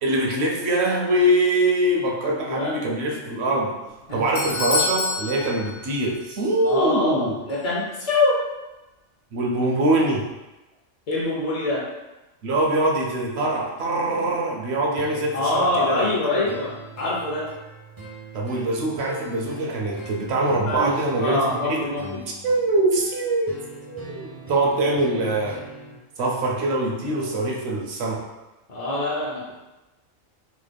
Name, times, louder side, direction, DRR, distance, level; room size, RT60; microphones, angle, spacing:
voice 1, 0.0-3.8 4.1-7.3 9.3-10.3 12.4-16.1 18.3-21.8 22.4-23.5 23.8-24.2 24.5-25.6 26.2-28.3, right 1 dB, 65° right, -2 dB, 0.8 m, -23 dB
voice 2, 2.3-2.8 4.1-4.6 6.6-8.4 11.1-11.9 15.3-17.5 20.6-22.2 28.7-29.5, left 2 dB, 45° left, -5 dB, 0.5 m, -25 dB
Doorbell, 3.9-6.4 6.7-6.8 7.5-7.6, left 3 dB, 70° left, 0.8 m, -28 dB
sound 1, 15.0-26.0, right 2 dB, 30° right, 0.4 m, -42 dB
3.1 x 2.2 x 3.3 m, 1.0 s
omnidirectional pair, 1.3 m